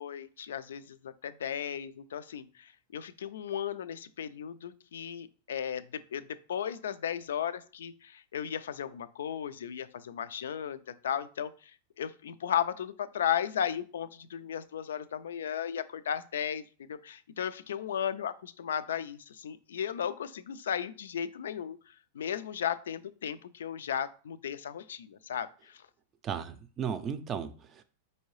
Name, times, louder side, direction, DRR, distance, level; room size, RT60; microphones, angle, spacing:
voice 1, 0.0-16.6 16.9-25.8, left 9 dB, 90° left, 0.3 m, -35 dB
voice 2, 26.2-27.8, right 7 dB, 30° right, 0.4 m, -35 dB
4.5 x 2.7 x 3.1 m
hypercardioid pair, 130°, 0 cm